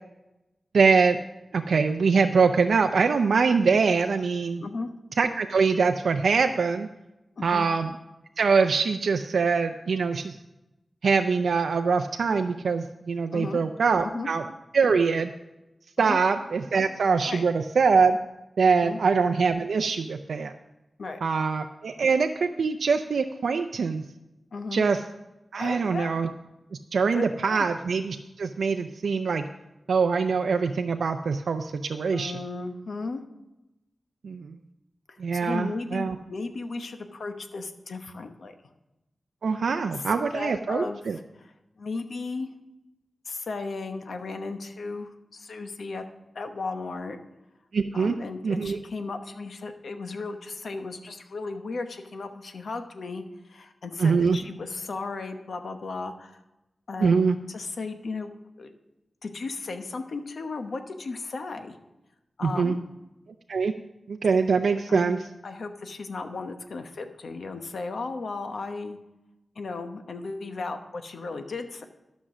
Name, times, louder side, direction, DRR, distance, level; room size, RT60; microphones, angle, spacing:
voice 1, 0.7-1.2 1.5-4.6 5.2-6.9 7.4-7.9 8.4-10.4 11.0-14.4 14.7-15.3 16.0-18.2 18.6-20.5 21.2-24.0 24.7-25.0 25.5-26.3 26.9-29.4 29.9-32.3 34.2-34.5 35.2-36.2 39.4-41.2 47.7-48.1 48.4-48.8 54.0-54.4 57.0-57.4 62.4-62.7 63.5-63.7 64.1-65.2, right 5 dB, 90° right, 6 dB, 0.5 m, -23 dB
voice 2, 4.6-4.9 7.4-7.7 13.3-13.6 14.0-14.3 16.0-16.2 17.3-17.4 18.8-19.0 21.0-21.2 24.5-24.8 25.6-26.1 27.1-27.7 32.1-33.2 35.1-38.5 39.9-40.0 40.3-42.5 43.2-46.0 46.3-47.2 47.9-56.4 56.9-58.3 58.6-58.7 59.2-61.8 62.4-62.9 64.9-69.0 69.5-71.8, left 3 dB, 70° left, 6 dB, 1.0 m, -35 dB
12.5 x 6.1 x 6.2 m, 0.96 s
wide cardioid pair, 130°, 0 cm